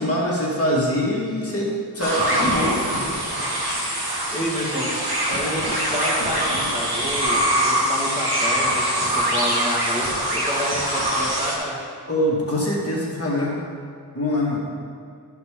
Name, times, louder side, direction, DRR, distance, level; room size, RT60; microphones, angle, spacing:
voice 1, 0.0-3.1 3.8-4.3 12.1-13.6 14.1-14.6, left 1 dB, 35° left, -5 dB, 2.1 m, -24 dB
sound 1, 2.0-11.5, equal, 65° right, 1.7 m, -23 dB
voice 2, 3.8-4.9 5.3-11.8, equal, 15° right, -5 dB, 1.9 m, -29 dB
13.0 x 5.8 x 3.8 m, 2.3 s
wide cardioid pair, 55°, 42 cm